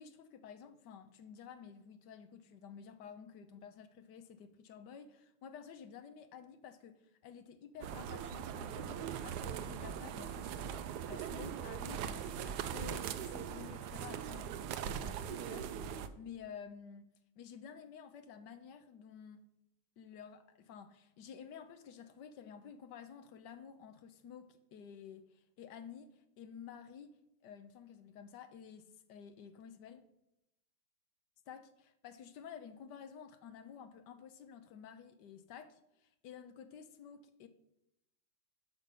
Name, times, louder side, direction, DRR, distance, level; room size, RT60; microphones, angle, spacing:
voice 1, 0.0-14.5 14.8-17.0 17.4-19.4 20.0-30.1 31.5-37.5, left 7 dB, 65° left, 1.3 m, -52 dB
sound 1, 7.8-16.1, right 8 dB, 70° right, 1.0 m, -41 dB
10.5 x 5.8 x 5.4 m
omnidirectional pair, 2.2 m